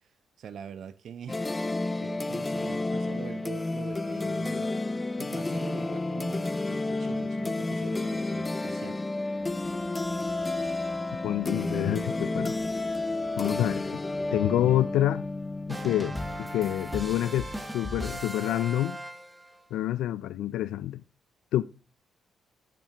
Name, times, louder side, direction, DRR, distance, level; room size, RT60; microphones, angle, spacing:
voice 1, 0.4-1.5 2.0-4.7 5.2-9.0, right 8 dB, 65° right, 0.6 m, -44 dB
sound 1, 1.3-17.9, left 2 dB, 20° left, 0.5 m, -31 dB
Subway metro underground, 9.4-17.4, right 3 dB, 40° right, 2.4 m, -55 dB
voice 2, 11.2-12.6 13.4-14.0 14.3-15.2 15.7-16.1 16.4-19.0 19.7-21.0 21.5-21.6, left 13 dB, 85° left, 0.3 m, -27 dB
sound 2, 15.7-19.6, equal, 5° right, 1.0 m, -37 dB
8.0 x 7.0 x 2.9 m
cardioid pair, 90°, 0 cm